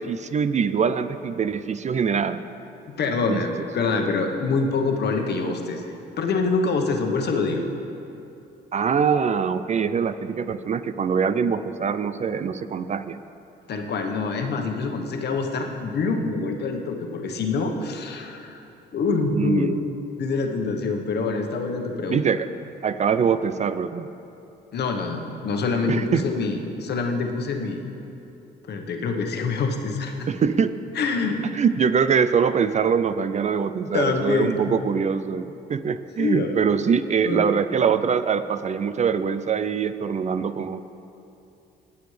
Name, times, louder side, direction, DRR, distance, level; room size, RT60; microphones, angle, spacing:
voice 1, 0.0-2.4 3.3-3.4 8.7-13.2 19.3-19.8 22.1-22.5 22.8-24.1 25.9-26.2 30.3-30.8 31.5-40.8, right 6 dB, 35° right, 12 dB, 0.4 m, -23 dB
voice 2, 3.0-5.8 6.2-7.6 13.7-18.6 18.9-19.8 20.2-22.2 24.7-27.8 28.7-30.3 30.9-31.4 33.9-34.6 36.2-36.5 37.2-37.4, left 4 dB, 60° left, 3 dB, 1.1 m, -25 dB
18.0 x 7.0 x 3.3 m, 2.8 s
cardioid pair, 80°, 19 cm